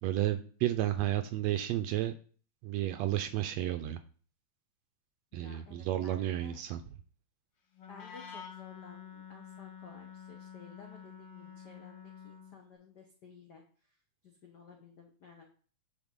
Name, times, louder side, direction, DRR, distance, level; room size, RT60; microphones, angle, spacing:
voice 1, 0.0-2.1 2.6-4.0 5.3-6.8, right 13 dB, 80° right, 9 dB, 1.6 m, -32 dB
voice 2, 5.3-6.6 7.9-13.9 14.2-15.5, left 5 dB, 75° left, 1 dB, 0.9 m, -55 dB
Wind instrument woodwind instrument, 7.7-12.6, left 7 dB, 60° left, 1.2 m, -49 dB
11.0 x 4.8 x 3.7 m, 0.42 s
omnidirectional pair, 3.4 m